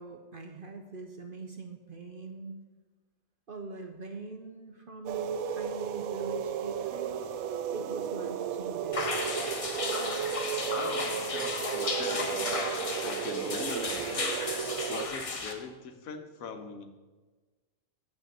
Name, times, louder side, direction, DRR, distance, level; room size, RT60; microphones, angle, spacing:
voice 1, 0.0-2.6 3.5-7.2 7.7-9.2, right 3 dB, 50° right, 4 dB, 0.7 m, -43 dB
sound 1, 5.1-15.1, right 8 dB, 80° right, 1.0 m, -34 dB
sound 2, 8.9-15.5, left 3 dB, 30° left, 0.7 m, -34 dB
voice 2, 10.7-12.5 13.0-14.3 14.9-16.9, left 4 dB, 75° left, 8 dB, 1.2 m, -41 dB
7.4 x 6.4 x 6.4 m, 1.3 s
omnidirectional pair, 1.5 m